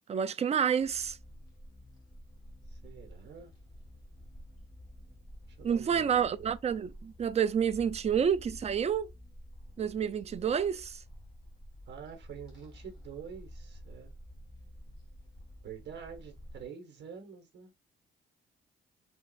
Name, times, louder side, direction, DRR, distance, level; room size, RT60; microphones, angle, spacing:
voice 1, 0.1-1.2 5.6-9.1 9.8-11.0, right 7 dB, 35° right, 0.3 m, -29 dB
sound 1, 0.8-16.7, equal, 20° left, 2.0 m, -50 dB
voice 2, 2.7-3.5 5.6-6.5 11.9-14.1 15.6-17.7, right 7 dB, 60° right, 1.2 m, -47 dB
4.0 x 2.3 x 2.3 m
cardioid pair, 90°, 20 cm